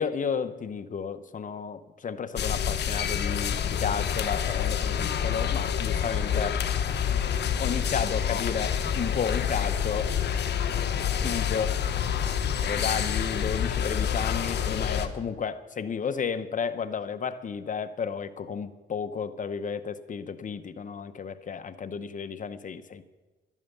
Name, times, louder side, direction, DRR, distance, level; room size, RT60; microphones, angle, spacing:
voice 1, 0.0-6.6 7.6-10.1 11.2-12.0 12.6-23.0, left 6 dB, 40° left, 0.9 m, -32 dB
sound 1, 2.4-15.1, left 8 dB, 60° left, 1.1 m, -28 dB
sound 2, 6.0-12.4, equal, ahead, 0.8 m, -45 dB
12.0 x 11.0 x 6.8 m
cardioid pair, 90°, 20 cm